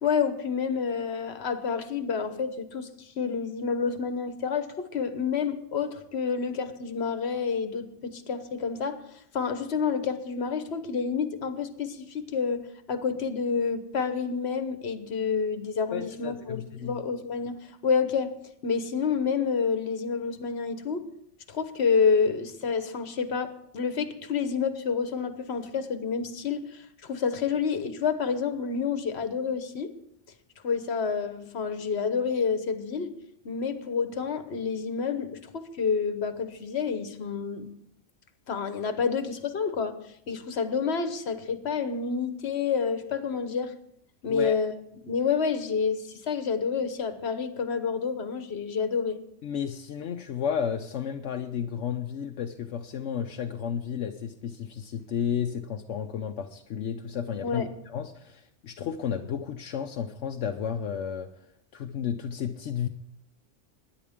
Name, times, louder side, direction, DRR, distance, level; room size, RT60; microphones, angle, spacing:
voice 1, 0.0-9.0 9.3-18.4 18.6-21.1 21.5-29.9 30.6-33.2 33.4-37.7 38.5-43.7 44.2-44.7 45.0-49.2 57.4-57.7, left 5 dB, 65° left, 1.3 m, -29 dB
voice 2, 15.9-17.0 44.3-44.6 49.4-61.3 61.7-62.9, left 8 dB, 80° left, 1.0 m, -32 dB
21.5 x 10.0 x 3.6 m
omnidirectional pair, 1.2 m